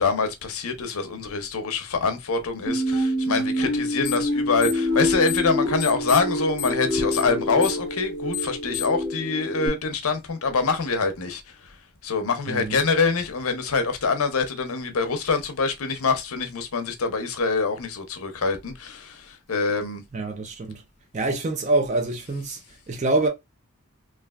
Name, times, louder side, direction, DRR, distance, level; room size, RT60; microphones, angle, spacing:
voice 1, 0.0-11.8 12.0-20.0, left 4 dB, 75° left, 0.7 m, -25 dB
sound 1, 2.7-9.7, left 1 dB, 15° right, 1.1 m, -26 dB
sound 2, 4.0-4.3 4.6-5.5 5.8-9.0, left 12 dB, 35° left, 0.8 m, -32 dB
voice 2, 12.5-12.8 20.1-20.8 21.1-23.3, right 2 dB, 30° right, 0.4 m, -25 dB
3.2 x 2.4 x 2.3 m
head